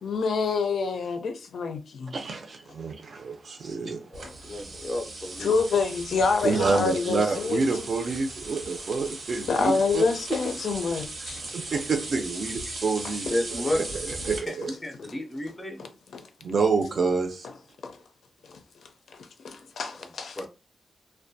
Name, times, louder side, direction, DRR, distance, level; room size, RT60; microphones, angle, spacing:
voice 1, 0.0-2.1 5.4-7.6 9.5-11.4 15.8-16.3 17.8-18.0 18.5-18.6 19.1-20.4, left 4 dB, 85° left, 0.4 m, -27 dB
voice 2, 2.1-4.2 6.4-10.0 11.5-13.6 14.0-14.7 16.4-17.5, right 4 dB, 50° right, 0.5 m, -28 dB
voice 3, 4.1-5.5 11.2-11.3 12.6-12.8 13.3-13.8 14.4-14.6 14.8-15.8 20.0-20.1 20.4-20.5, left 1 dB, 15° left, 0.5 m, -32 dB
sound 1, 4.1-14.4, right 2 dB, 80° right, 1.0 m, -38 dB
2.5 x 2.2 x 2.6 m
wide cardioid pair, 170°, 0 cm